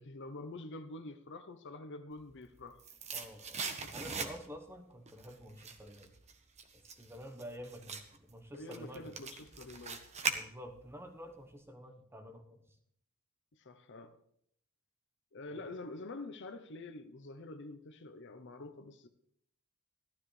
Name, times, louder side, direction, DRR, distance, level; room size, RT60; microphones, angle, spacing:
voice 1, 0.0-2.8 8.5-10.1 13.6-14.2 15.3-19.1, left 2 dB, 55° left, 0.7 m, -47 dB
sound 1, 2.3-4.7 5.1-10.9 11.2-11.3, right 5 dB, 30° right, 1.0 m, -41 dB
voice 2, 3.1-3.6 3.9-6.1 6.7-9.1 10.3-12.6 15.5-15.7, equal, 10° right, 1.1 m, -49 dB
14.5 x 12.5 x 3.3 m
head